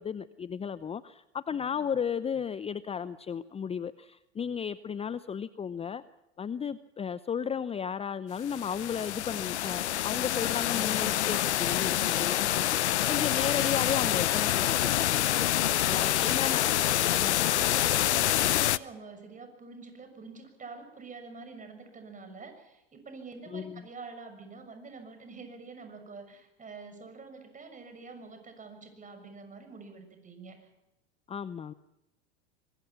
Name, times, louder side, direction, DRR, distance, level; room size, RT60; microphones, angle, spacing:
voice 1, 0.0-6.0 6.4-15.2 15.5-16.7 17.1-17.4 23.5-23.9 31.3-31.7, left 7 dB, 20° left, 16 dB, 0.7 m, -34 dB
sound 1, 8.4-18.8, left 13 dB, 80° left, 0.8 m, -27 dB
voice 2, 15.5-16.4 16.8-30.7, right 4 dB, 25° right, 7 dB, 6.8 m, -46 dB
25.0 x 22.0 x 5.9 m, 0.94 s
hypercardioid pair, 90°, 34 cm